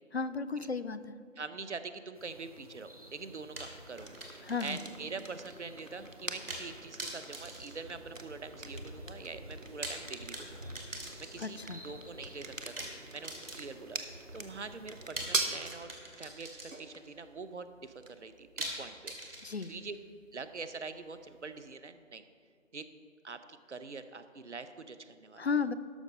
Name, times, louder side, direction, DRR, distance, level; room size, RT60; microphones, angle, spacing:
voice 1, 0.1-1.0 4.4-4.8 11.4-11.8 19.4-19.7 25.4-25.7, left 5 dB, 55° left, 12 dB, 0.5 m, -33 dB
voice 2, 1.4-4.1 4.6-11.6 11.8-20.0 20.3-22.2 22.7-22.9 23.2-25.5, right 4 dB, 65° right, 11 dB, 0.7 m, -44 dB
sound 1, 2.1-15.1, equal, 30° right, 0.9 m, -52 dB
sound 2, 3.6-5.1 5.4-5.5 6.5-6.7 7.0-8.5 9.6-11.7 12.8-13.9 15.2-17.1 18.6-20.0, right 1 dB, 45° right, 1.8 m, -43 dB
sound 3, 4.0-21.7, right 3 dB, 90° right, 1.2 m, -44 dB
12.5 x 6.2 x 5.2 m, 2.3 s
figure-of-eight pair, 160°, 38 cm